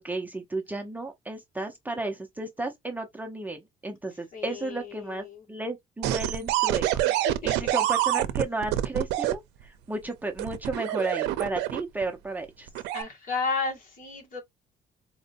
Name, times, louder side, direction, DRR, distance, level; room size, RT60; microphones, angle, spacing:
voice 1, 0.0-7.0 7.4-12.7, right 2 dB, 10° right, 0.8 m, -33 dB
voice 2, 4.3-5.4 7.0-7.8 12.9-14.4, left 4 dB, 55° left, 1.9 m, -33 dB
sound 1, 6.0-9.3 10.4-12.0 12.7-13.0, right 14 dB, 90° right, 0.5 m, -26 dB
4.3 x 2.7 x 2.6 m
cardioid pair, 110°, 17 cm